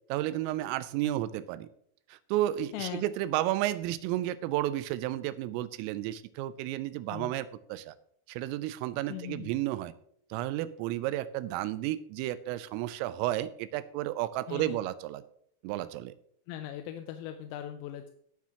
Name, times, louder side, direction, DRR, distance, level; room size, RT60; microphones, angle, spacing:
voice 1, 0.1-1.7 2.1-7.9 8.3-9.9 10.3-15.2 15.6-16.1, right 14 dB, 90° right, 14 dB, 3.2 m, -32 dB
voice 2, 2.7-3.0 7.1-7.3 9.1-9.5 14.5-14.8 16.5-18.1, left 11 dB, 90° left, 7 dB, 3.4 m, -39 dB
16.0 x 8.3 x 2.9 m, 0.68 s
omnidirectional pair, 5.8 m